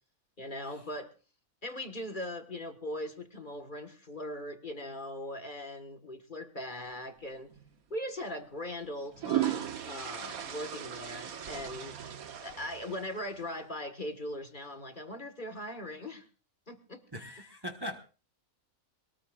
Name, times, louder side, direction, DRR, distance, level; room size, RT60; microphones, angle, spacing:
voice 1, 0.4-1.1 1.6-7.5 7.9-12.0 12.4-16.3 16.7-17.0, left 1 dB, 35° left, 6 dB, 1.8 m, -40 dB
sound 1, 7.5-7.7 8.8-13.5, right 11 dB, 75° right, 1.5 m, -36 dB
voice 2, 17.1-18.0, equal, 15° right, 4 dB, 1.4 m, -40 dB
22.5 x 19.5 x 2.5 m, 0.35 s
omnidirectional pair, 1.5 m